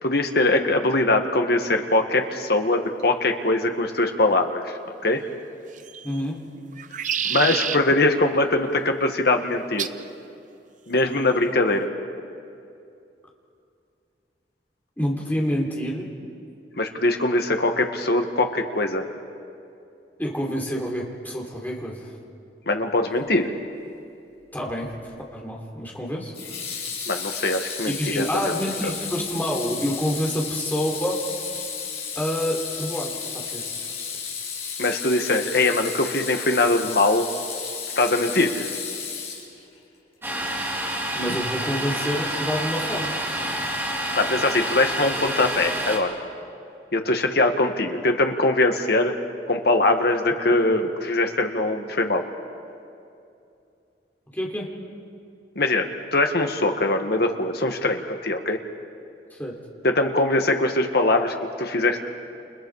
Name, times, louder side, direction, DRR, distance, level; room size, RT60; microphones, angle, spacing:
voice 1, 0.0-5.2 7.3-9.9 10.9-11.9 16.8-19.1 22.7-23.5 27.1-28.4 34.8-37.3 38.0-38.7 41.3-41.4 44.2-46.2 46.9-49.2 49.5-52.2 55.6-58.6 59.8-62.0, left 2 dB, 60° left, 4 dB, 1.8 m, -22 dB
sound 1, 5.7-6.2 6.7-7.8 9.8-10.0 11.0-11.4, right 8 dB, 45° right, 0.7 m, -28 dB
voice 2, 6.0-6.4 15.0-16.1 20.2-22.2 24.5-24.9 25.3-26.3 27.9-31.2 32.2-33.9 41.1-43.2 43.4-43.6 54.3-54.7 59.3-59.6, equal, 10° left, -1 dB, 3.5 m, -28 dB
Water tap faucet / Sink (filling or washing), 24.7-25.0 26.3-39.8, left 6 dB, 35° left, 6.4 m, -33 dB
Domestic sounds home sounds, 40.2-46.0, right 1 dB, 15° right, 3.4 m, -28 dB
29.5 x 29.0 x 4.9 m, 2.5 s
head